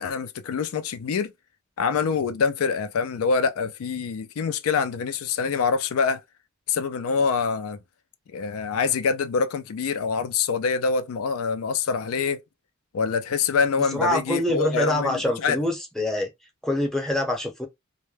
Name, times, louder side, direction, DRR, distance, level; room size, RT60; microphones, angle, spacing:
voice 1, 0.0-1.3 1.8-6.2 6.7-7.8 8.3-12.4 12.9-15.6, left 5 dB, 80° left, 0.4 m, -25 dB
voice 2, 13.9-16.3 16.6-17.7, left 1 dB, ahead, 0.7 m, -25 dB
2.1 x 2.1 x 3.1 m
head